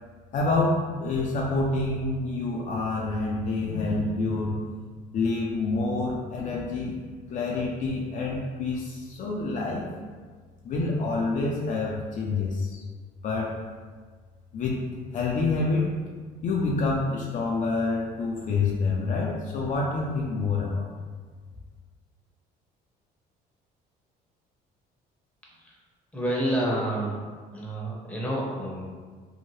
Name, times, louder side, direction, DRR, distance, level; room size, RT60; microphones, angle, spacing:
voice 1, 0.3-4.6 5.1-7.0 7.3-9.9 10.6-12.8 13.2-13.6 14.5-14.8 15.1-15.9 16.4-20.9, left 3 dB, 50° left, -2 dB, 0.4 m, -27 dB
voice 2, 26.1-27.2 27.5-28.8, right 1 dB, 10° left, -4 dB, 0.7 m, -29 dB
2.7 x 2.1 x 3.0 m, 1.5 s
cardioid pair, 110°, 17 cm